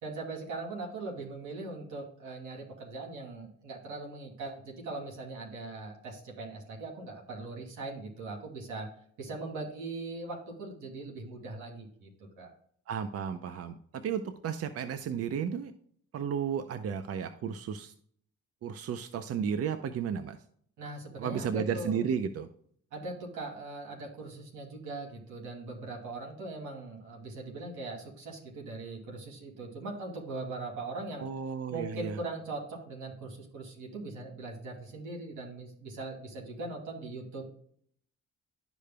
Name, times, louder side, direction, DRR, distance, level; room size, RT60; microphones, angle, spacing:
voice 1, 0.0-8.9 9.2-12.1 12.4-12.5 20.8-22.0 22.9-31.3 31.7-37.4, right 3 dB, 85° right, -1 dB, 2.6 m, -40 dB
voice 2, 12.9-15.7 16.1-17.9 18.6-20.4 21.2-22.5 31.2-32.2, right 7 dB, 50° right, 10 dB, 0.6 m, -33 dB
12.0 x 5.1 x 2.2 m, 0.62 s
cardioid pair, 90°, 30 cm